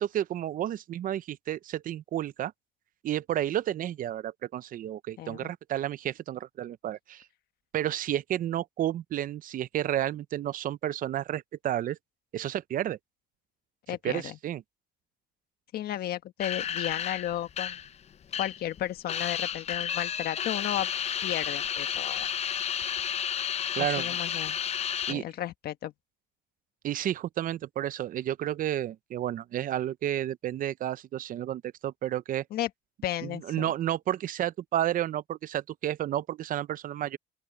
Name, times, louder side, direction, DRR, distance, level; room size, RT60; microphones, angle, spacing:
voice 1, 0.0-2.5 3.0-7.2 7.7-12.0 12.3-13.0 13.9-14.6 23.7-24.2 25.1-25.2 26.8-32.4 33.2-37.2, right 12 dB, 55° right, 0.6 m, -31 dB
voice 2, 5.2-5.5 13.9-14.4 15.7-17.8 18.4-20.9 21.2-22.3 23.8-24.6 25.1-25.9 32.5-32.7 33.0-33.7, left 12 dB, 65° left, 1.4 m, -34 dB
sound 1, 16.4-18.8 19.1-25.1, left 8 dB, 40° left, 0.6 m, -32 dB
open air
cardioid pair, 110°, 17 cm